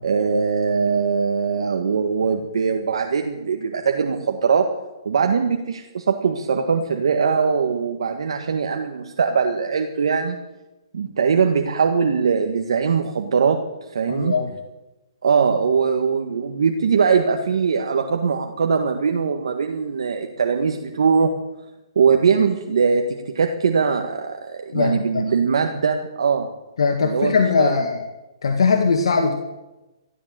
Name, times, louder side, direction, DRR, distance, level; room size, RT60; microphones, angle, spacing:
voice 1, 0.0-4.7 5.1-10.4 10.9-13.6 13.9-14.3 15.2-21.3 22.0-26.5 27.0-27.8, right 5 dB, 70° right, 4 dB, 1.7 m, -21 dB
voice 2, 14.1-14.5 24.7-25.2 26.8-28.0 28.4-29.3, left 5 dB, 75° left, 3 dB, 2.0 m, -20 dB
13.5 x 13.0 x 7.7 m, 1.0 s
hypercardioid pair, 160°, 3 cm